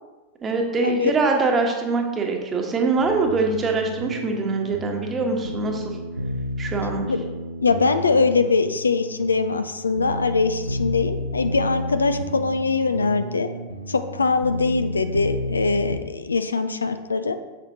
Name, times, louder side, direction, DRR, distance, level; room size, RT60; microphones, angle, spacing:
voice 1, 0.4-6.0 6.6-7.1, right 3 dB, 20° right, 2 dB, 1.1 m, -23 dB
sound 1, 3.0-16.0, equal, 85° right, 0.5 m, -31 dB
voice 2, 7.6-13.5 13.9-17.3, left 4 dB, 75° left, 10 dB, 0.4 m, -22 dB
7.3 x 7.1 x 2.7 m, 1.2 s
figure-of-eight pair, 90°, 0 cm